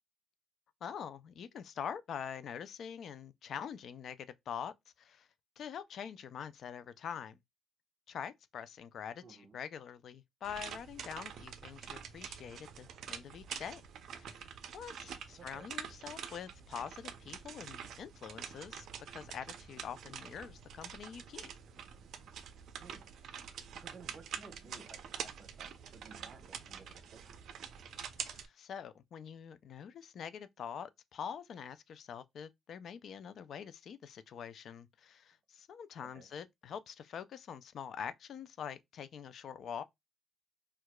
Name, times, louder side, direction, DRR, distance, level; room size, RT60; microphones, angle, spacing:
voice 1, 0.8-5.3 5.6-7.4 8.1-13.8 14.1-14.4 14.7-21.5 28.2-39.8, left 8 dB, 65° left, 0.3 m, -45 dB
voice 2, 9.2-9.6 15.4-15.7 22.8-23.1 23.5-27.4 36.0-36.3, right 5 dB, 45° right, 0.9 m, -56 dB
sound 1, 10.4-28.5, right 8 dB, 70° right, 0.4 m, -46 dB
4.5 x 2.3 x 2.2 m
cardioid pair, 90°, 0 cm